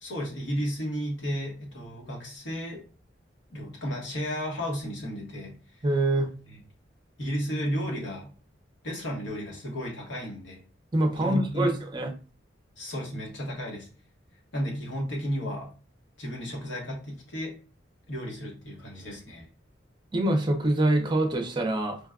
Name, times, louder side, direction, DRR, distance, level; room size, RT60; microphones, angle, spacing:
voice 1, 0.0-2.8 3.5-5.6 6.5-6.6 7.2-8.3 8.8-10.6 11.2-11.7 12.8-13.9 14.5-15.7 16.2-17.6 18.1-19.5, equal, 90° left, -1 dB, 1.2 m, -33 dB
voice 2, 5.8-6.3 10.9-12.1 20.1-22.0, right 1 dB, 25° right, 4 dB, 0.5 m, -25 dB
5.1 x 2.2 x 2.3 m, 0.36 s
head